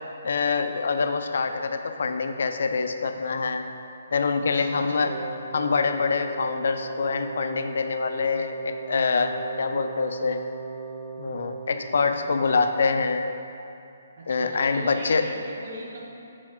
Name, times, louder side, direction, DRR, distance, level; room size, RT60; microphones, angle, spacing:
voice 1, 0.2-3.7 4.1-5.1 5.5-10.4 11.2-13.3 14.3-15.2, left 4 dB, 65° left, 7 dB, 0.4 m, -25 dB
voice 2, 4.4-5.4 12.1-12.5 14.2-16.0, right 1 dB, 55° right, -3 dB, 1.2 m, -39 dB
Wind instrument woodwind instrument, 5.0-12.3, right 4 dB, 20° right, 0.6 m, -37 dB
6.3 x 4.0 x 4.4 m, 2.7 s
hypercardioid pair, 165°, 0 cm